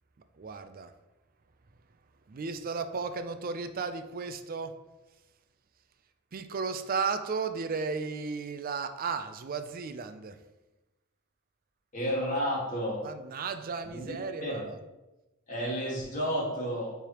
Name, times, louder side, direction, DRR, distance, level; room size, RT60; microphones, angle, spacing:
voice 1, 0.4-0.9 2.3-4.8 6.3-10.4 13.0-14.8, right 5 dB, 45° right, 9 dB, 0.4 m, -34 dB
voice 2, 11.9-13.0 13.9-14.2 14.4-14.6 15.5-16.9, equal, 40° left, -4 dB, 1.8 m, -31 dB
9.3 x 3.4 x 3.0 m, 1.0 s
head